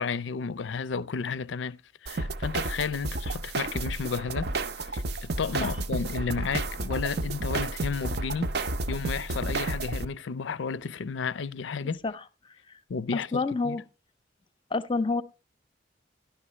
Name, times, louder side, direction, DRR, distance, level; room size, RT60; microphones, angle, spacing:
voice 1, 0.0-4.5 4.8-8.5 8.9-12.0 12.9-13.8, left 5 dB, 80° left, 0.5 m, -32 dB
sound 1, 2.1-10.1, right 2 dB, 55° right, 0.6 m, -31 dB
voice 2, 12.0-12.5 13.1-13.8 14.7-15.2, left 3 dB, 25° left, 0.6 m, -29 dB
13.0 x 11.0 x 3.1 m
head